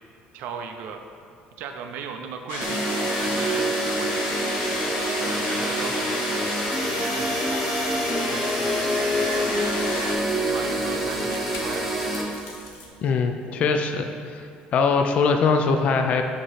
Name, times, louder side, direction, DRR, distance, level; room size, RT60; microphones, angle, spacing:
voice 1, 0.3-1.0 1.6-3.7 4.0-4.1 5.2-9.6 10.4-11.9, right 6 dB, 70° right, 5 dB, 0.5 m, -37 dB
sound 1, 2.5-10.1, left 2 dB, 90° left, 1.0 m, -31 dB
sound 2, 2.6-12.2, right 1 dB, 5° right, 0.8 m, -26 dB
sound 3, 2.8-12.9, left 3 dB, 70° left, 1.2 m, -46 dB
voice 2, 13.0-14.4 14.7-16.2, left 5 dB, 45° left, 5 dB, 0.4 m, -22 dB
7.9 x 2.9 x 5.6 m, 2.4 s
cardioid pair, 145°, 3 cm